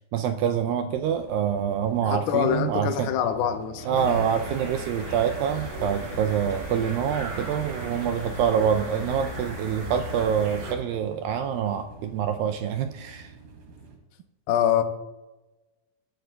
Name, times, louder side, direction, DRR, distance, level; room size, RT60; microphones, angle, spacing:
voice 1, 0.1-3.1 3.8-13.3, right 8 dB, 85° right, 6 dB, 2.0 m, -26 dB
sound 1, 0.9-14.0, right 3 dB, 65° right, 3.7 m, -48 dB
voice 2, 2.0-4.3 14.5-14.8, left 9 dB, 80° left, 7 dB, 2.6 m, -25 dB
sound 2, 3.8-9.5, left 2 dB, 55° left, 3.9 m, -47 dB
sound 3, 3.9-10.7, right 2 dB, 50° right, 1.6 m, -36 dB
22.0 x 10.5 x 2.3 m, 1.1 s
omnidirectional pair, 4.7 m